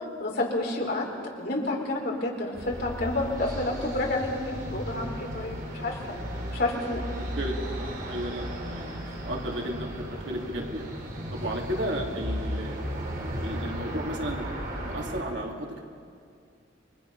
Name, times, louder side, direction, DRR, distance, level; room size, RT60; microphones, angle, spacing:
voice 1, 0.2-1.1 1.4-6.0 6.5-7.0, left 2 dB, 55° left, -1 dB, 4.1 m, -29 dB
sound 1, 2.5-15.2, equal, 50° right, 3.8 m, -35 dB
voice 2, 7.2-10.9 11.3-12.8 13.4-15.8, equal, 70° right, 0 dB, 3.1 m, -34 dB
29.0 x 23.0 x 5.6 m, 2.3 s
head